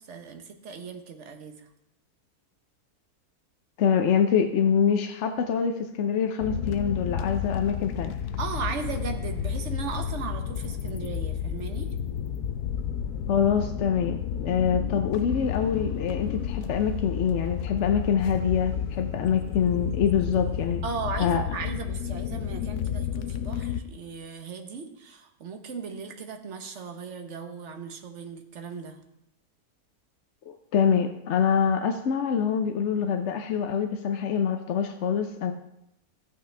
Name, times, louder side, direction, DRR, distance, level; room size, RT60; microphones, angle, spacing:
voice 1, 0.0-1.7 8.4-11.9 20.8-29.0, right 5 dB, 50° right, 6 dB, 1.3 m, -37 dB
voice 2, 3.8-8.2 13.3-20.8 21.2-21.4 30.5-35.5, left 7 dB, 60° left, 6 dB, 0.8 m, -25 dB
sound 1, 6.4-23.8, left 9 dB, 80° left, 1.2 m, -31 dB
14.0 x 8.5 x 3.3 m, 0.82 s
omnidirectional pair, 1.6 m